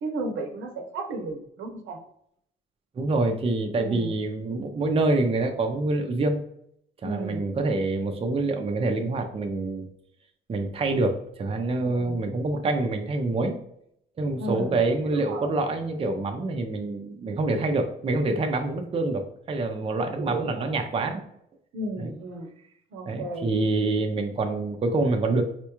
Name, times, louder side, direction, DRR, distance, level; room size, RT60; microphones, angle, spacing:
voice 1, 0.0-2.0 3.7-4.1 7.0-7.5 11.8-12.2 14.4-15.5 20.2-20.7 21.7-22.5 22.9-23.5, right 2 dB, 75° right, 3 dB, 0.7 m, -34 dB
voice 2, 3.0-6.4 7.0-9.9 10.5-13.6 14.2-21.2 22.0-22.2 23.1-25.4, right 2 dB, 30° right, 4 dB, 0.5 m, -26 dB
4.2 x 2.3 x 2.9 m, 0.71 s
cardioid pair, 90°, 20 cm